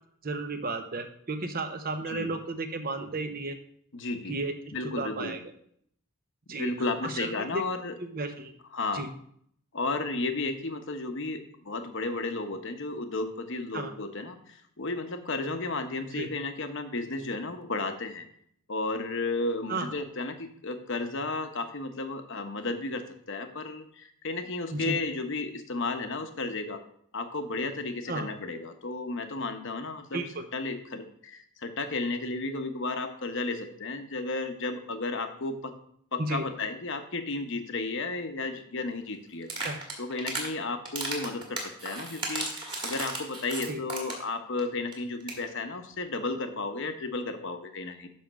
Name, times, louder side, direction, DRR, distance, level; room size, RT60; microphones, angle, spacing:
voice 1, 0.2-3.6 4.3-4.5 5.0-5.4 6.5-7.6 8.0-8.5 8.9-9.1 13.7-13.9 16.1-16.3 19.7-19.9 24.7-25.0 28.1-28.3 30.1-30.5 36.2-36.5 39.6-39.8 43.7-43.8, right 2 dB, 40° right, 7 dB, 0.8 m, -33 dB
voice 2, 3.9-4.4 4.7-5.4 6.6-8.0 8.7-9.1 9.7-18.3 18.7-26.8 27.1-30.2 30.5-35.7 36.1-39.5 40.0-48.1, left 3 dB, 55° left, 6 dB, 0.9 m, -33 dB
sound 1, 39.4-40.5 40.8-44.3 44.6-44.7 44.9-45.0 45.2-45.4, right 2 dB, 25° right, 1.9 m, -34 dB
10.0 x 3.5 x 6.3 m, 0.66 s
head